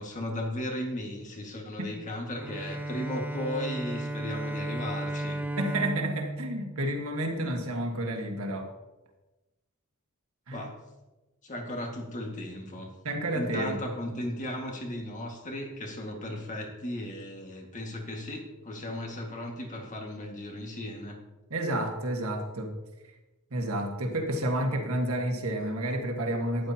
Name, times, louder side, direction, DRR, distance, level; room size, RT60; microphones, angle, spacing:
voice 1, 0.0-5.4 10.5-10.7 11.4-12.9 13.3-21.2, left 1 dB, 35° left, 1 dB, 1.9 m, -36 dB
Bowed string instrument, 2.4-7.8, right 1 dB, 10° right, 0.5 m, -35 dB
voice 2, 5.6-8.7 10.5-10.7 13.0-13.8 21.5-22.8 23.5-26.7, right 1 dB, 70° right, 3 dB, 1.6 m, -30 dB
12.5 x 10.5 x 2.9 m, 1.1 s
head